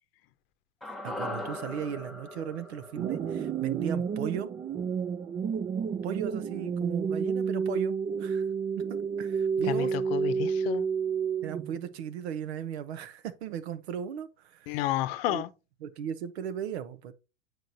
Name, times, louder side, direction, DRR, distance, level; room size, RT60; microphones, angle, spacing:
sound 1, 0.8-5.1 5.4-5.5, left 1 dB, ahead, 0.8 m, -41 dB
voice 1, 1.0-4.5 6.0-8.4 8.9-9.9 11.4-14.8 15.3-15.4 15.8-17.1, right 9 dB, 80° right, 0.8 m, -37 dB
sound 2, 2.9-11.9, right 6 dB, 20° right, 0.3 m, -30 dB
voice 2, 9.6-10.9 14.7-15.5, left 14 dB, 65° left, 0.7 m, -31 dB
7.7 x 4.6 x 2.7 m
hypercardioid pair, 110°, 32 cm